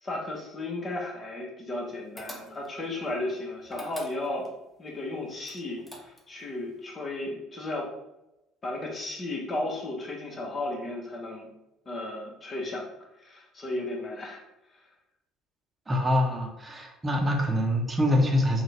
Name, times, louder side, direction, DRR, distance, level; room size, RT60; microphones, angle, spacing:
voice 1, 0.0-4.5 4.8-7.9 8.6-11.5 11.9-12.8 13.2-14.4, left 2 dB, 35° left, -1 dB, 1.1 m, -34 dB
sound 1, 2.2-2.9 3.7-4.6 5.4-6.4, equal, 10° left, 0.8 m, -43 dB
voice 2, 15.9-18.6, left 1 dB, 20° right, 2 dB, 0.8 m, -25 dB
3.7 x 2.4 x 3.4 m, 0.92 s
hypercardioid pair, 65°, 0 cm